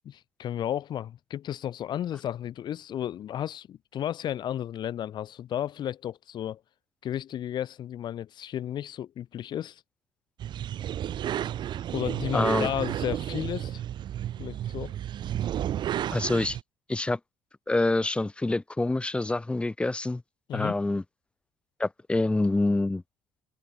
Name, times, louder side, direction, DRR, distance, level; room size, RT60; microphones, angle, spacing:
voice 1, 0.4-6.6 7.0-9.8 11.9-13.8 14.4-14.9 20.5-20.8, left 11 dB, 50° left, 3.5 m, -33 dB
sound 1, 10.4-16.6, right 11 dB, 50° right, 5.5 m, -32 dB
voice 2, 12.3-12.7 16.1-16.6 16.9-17.2 17.7-20.2 20.5-21.0 21.8-23.0, left 2 dB, 10° left, 5.9 m, -26 dB
open air
cardioid pair, 125°, 10 cm